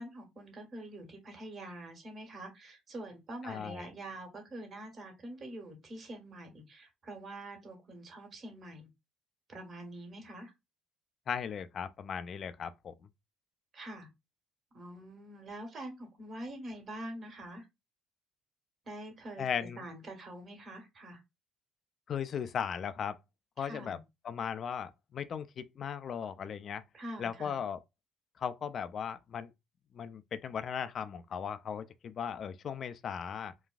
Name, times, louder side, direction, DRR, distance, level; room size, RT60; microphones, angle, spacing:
voice 1, 0.0-8.9 9.5-10.5 13.7-14.1 14.7-17.7 18.8-21.2 23.6-24.0 26.9-27.6, right 1 dB, 45° right, 1.4 m, -45 dB
voice 2, 3.4-3.9 11.3-12.9 19.4-19.8 22.1-23.2 23.6-24.0 24.2-26.8 27.2-27.8 28.4-29.5 29.9-33.5, left 7 dB, 50° left, 0.4 m, -37 dB
4.0 x 2.3 x 2.3 m
hypercardioid pair, 50°, 0 cm